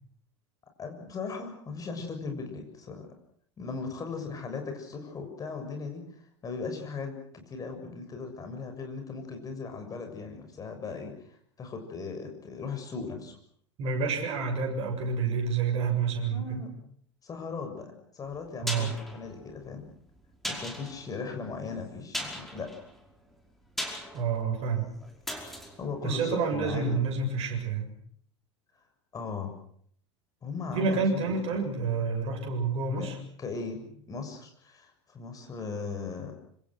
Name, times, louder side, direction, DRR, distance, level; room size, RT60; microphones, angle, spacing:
voice 1, 0.8-3.1 3.6-6.0 6.4-13.4 16.3-16.7 17.2-19.9 20.4-22.7 25.8-27.0 29.1-29.5 30.4-31.7 33.0-33.1 33.4-36.3, left 4 dB, 25° left, 5 dB, 6.8 m, -38 dB
voice 2, 13.8-16.7 18.6-18.9 24.1-24.9 26.0-27.9 30.7-33.2, right 5 dB, 40° right, 2 dB, 7.4 m, -29 dB
sound 1, 18.3-27.1 27.4-27.5, equal, ahead, 5.2 m, -40 dB
27.0 x 25.5 x 6.3 m, 0.64 s
figure-of-eight pair, 80°, 15 cm